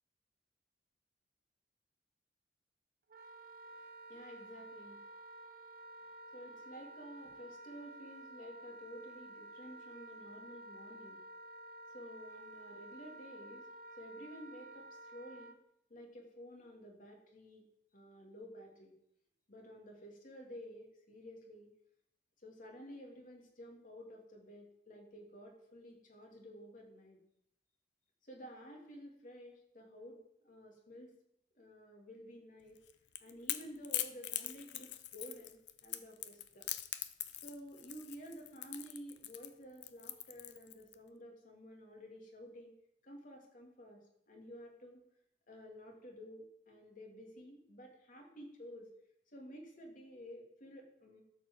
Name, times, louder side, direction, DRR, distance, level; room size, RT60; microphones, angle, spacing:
Wind instrument woodwind instrument, 3.1-15.6, right 2 dB, 55° right, 1.0 m, -52 dB
voice 1, 3.7-5.0 6.3-11.2 11.9-13.7 14.0-15.5 15.9-17.6 17.9-18.9 19.5-21.7 22.4-27.2 28.2-31.1 31.5-32.8 33.2-36.6 37.4-42.8 43.0-44.0 44.3-45.0 45.5-48.9 49.3-51.2, equal, 50° left, 1 dB, 2.7 m, -52 dB
Crackle / Crack, 32.8-40.9, left 13 dB, 75° left, 0.7 m, -42 dB
12.5 x 4.9 x 7.4 m, 0.77 s
head